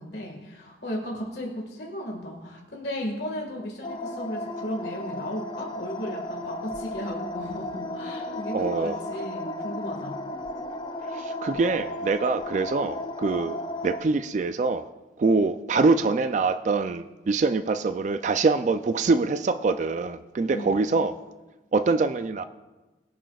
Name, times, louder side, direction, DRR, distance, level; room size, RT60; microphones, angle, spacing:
voice 1, 0.0-10.2 20.5-20.7, equal, 65° left, -1 dB, 1.7 m, -35 dB
sound 1, 3.8-14.0, left 1 dB, 25° left, 0.4 m, -34 dB
voice 2, 8.5-9.0 11.1-13.6 13.8-14.8 15.2-21.1 21.7-22.4, right 3 dB, 40° right, 10 dB, 0.3 m, -24 dB
22.5 x 7.5 x 2.3 m, 1.1 s
head